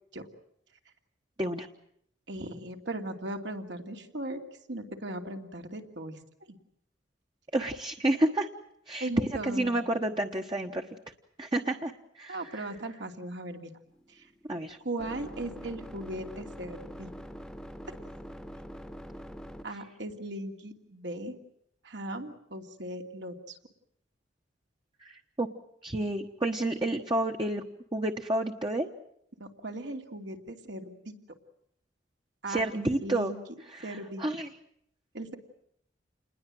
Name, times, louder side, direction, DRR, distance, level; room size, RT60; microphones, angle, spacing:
voice 1, 2.3-4.4 4.7-6.2 6.5-6.6 9.0-9.9 12.3-13.7 14.1-14.3 14.8-17.1 19.6-21.3 21.8-23.6 29.4-31.1 32.4-33.4 33.8-34.2 35.1-35.4, right 1 dB, 70° right, 4 dB, 2.8 m, -38 dB
voice 2, 7.5-8.5 8.9-10.8 11.4-12.6 14.5-14.8 25.0-25.5 25.8-27.6 27.9-28.9 32.5-33.3 33.7-34.5, right 1 dB, 25° right, 3 dB, 1.2 m, -30 dB
sound 1, 13.9-19.9, equal, 5° left, 1.2 m, -44 dB
28.5 x 21.0 x 7.7 m, 0.73 s
head